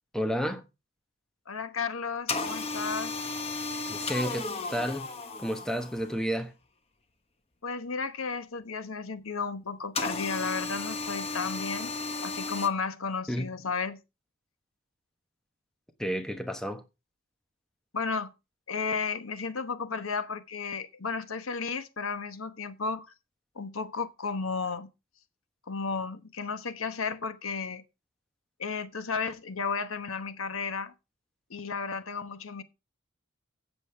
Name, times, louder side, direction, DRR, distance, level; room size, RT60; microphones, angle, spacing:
voice 1, 0.1-0.6 3.9-5.1 5.4-6.5 13.3-13.5 16.0-16.8, equal, 5° left, 1.0 m, -31 dB
voice 2, 1.5-3.2 7.6-11.9 12.2-14.0 17.9-18.3 18.7-23.1 23.6-24.9 25.7-27.8 28.6-30.9 31.5-32.6, left 5 dB, 80° left, 1.0 m, -33 dB
sound 1, 2.3-6.2 10.0-12.7, left 3 dB, 30° left, 1.0 m, -34 dB
12.5 x 8.4 x 3.3 m
head